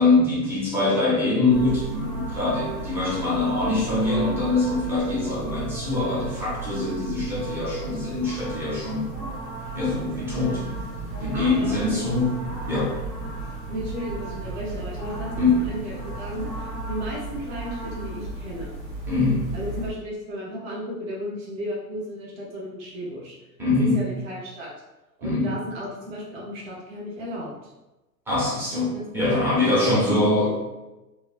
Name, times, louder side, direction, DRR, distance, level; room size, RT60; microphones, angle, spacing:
voice 1, 0.0-9.2 9.7-10.6 11.2-12.9 15.4-15.7 19.1-19.5 23.6-24.1 25.2-25.6 28.3-30.6, left 2 dB, 5° right, -7 dB, 0.4 m, -23 dB
sound 1, 1.5-19.9, right 2 dB, 85° right, 1.1 m, -34 dB
voice 2, 11.3-12.1 13.7-18.8 19.5-23.4 23.8-24.7 25.2-27.7 28.9-29.2 29.8-30.2, equal, 50° right, -4 dB, 1.1 m, -34 dB
3.0 x 2.2 x 2.4 m, 1.0 s
hypercardioid pair, 110°, 49 cm